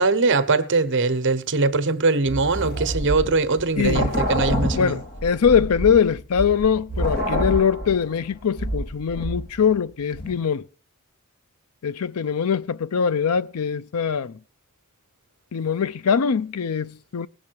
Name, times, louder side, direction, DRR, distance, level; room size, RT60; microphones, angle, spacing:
voice 1, 0.0-5.0, right 3 dB, 55° right, 1.1 m, -21 dB
sound 1, 2.2-9.8 10.1-10.3, equal, 45° left, 2.6 m, -27 dB
voice 2, 3.8-4.2 4.7-10.6 11.8-14.4 15.5-17.3, left 7 dB, 75° left, 0.5 m, -22 dB
19.0 x 7.2 x 4.7 m
head